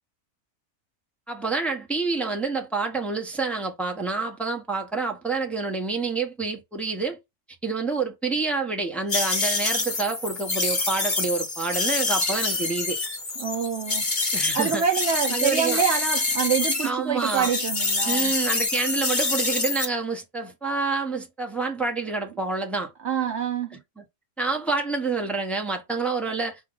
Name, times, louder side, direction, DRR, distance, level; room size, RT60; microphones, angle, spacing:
voice 1, 1.3-7.2 7.6-13.0 14.3-14.8 15.3-15.8 16.8-17.5 18.0-22.9 24.0-24.1 24.4-26.6, right 4 dB, ahead, 0.9 m, -28 dB
sound 1, 9.1-16.9 17.2-19.9, left 3 dB, 40° left, 1.2 m, -26 dB
voice 2, 13.4-14.1 14.5-18.3 23.0-23.8, right 7 dB, 65° right, 0.8 m, -26 dB
5.2 x 2.4 x 3.8 m
omnidirectional pair, 1.4 m